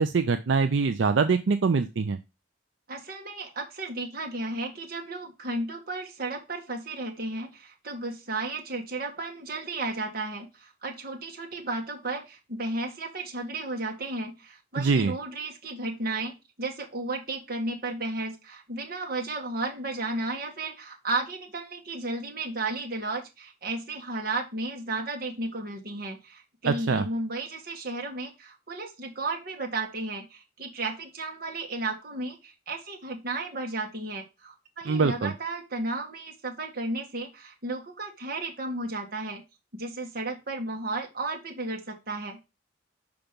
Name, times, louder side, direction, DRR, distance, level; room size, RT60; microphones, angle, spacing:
voice 1, 0.0-2.2 14.8-15.1 26.7-27.1 34.9-35.3, right 4 dB, 85° right, 9 dB, 0.5 m, -24 dB
voice 2, 2.9-39.4 39.8-42.4, right 2 dB, 55° right, 2 dB, 1.8 m, -34 dB
5.9 x 5.1 x 5.2 m, 0.26 s
head